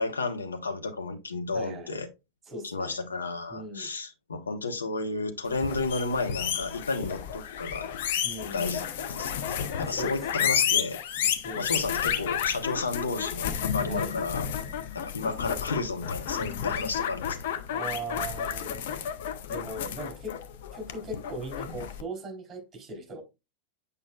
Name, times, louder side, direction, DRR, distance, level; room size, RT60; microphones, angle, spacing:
voice 1, 0.0-2.1 2.6-7.9 8.5-8.8 9.1-11.0 11.5-14.5 14.9-17.4, left 3 dB, 75° left, 1.1 m, -32 dB
voice 2, 1.5-2.0 2.5-3.0 3.5-3.9 8.2-8.8 9.9-10.5 11.4-11.9 13.9-14.2 17.7-18.8 19.5-20.4 20.7-23.2, right 2 dB, 15° right, 3.5 m, -39 dB
sound 1, 5.5-22.0, left 9 dB, 55° left, 0.8 m, -31 dB
8.4 x 5.3 x 2.4 m
figure-of-eight pair, 90°, 0 cm